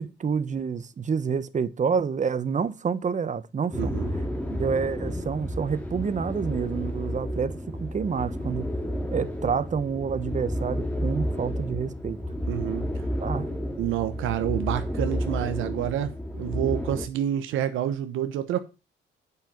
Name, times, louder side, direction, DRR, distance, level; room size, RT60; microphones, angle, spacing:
voice 1, 0.0-4.0 4.5-8.6 9.1-12.2 13.2-13.5, right 6 dB, 40° right, 1.0 m, -28 dB
sound 1, 3.7-17.1, equal, 5° left, 2.1 m, -31 dB
voice 2, 3.7-4.1 12.5-12.9 13.8-18.6, right 11 dB, 90° right, 1.0 m, -28 dB
8.1 x 5.7 x 7.3 m
cardioid pair, 90°, 20 cm